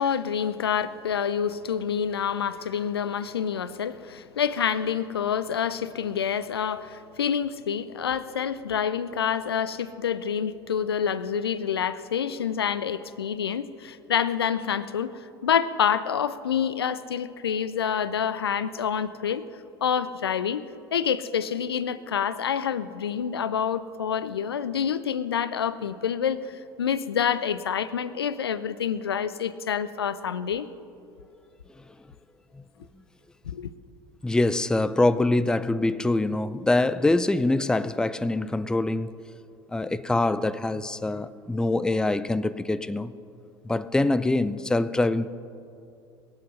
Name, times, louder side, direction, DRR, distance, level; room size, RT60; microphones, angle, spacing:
voice 1, 0.0-19.5 19.8-20.6 20.9-30.7 33.4-33.7, left 8 dB, 75° left, 0.5 m, -27 dB
voice 2, 34.2-39.2 39.7-43.1 43.6-45.3, left 2 dB, 5° left, 0.4 m, -24 dB
22.5 x 7.8 x 5.5 m
figure-of-eight pair, 65°, 13 cm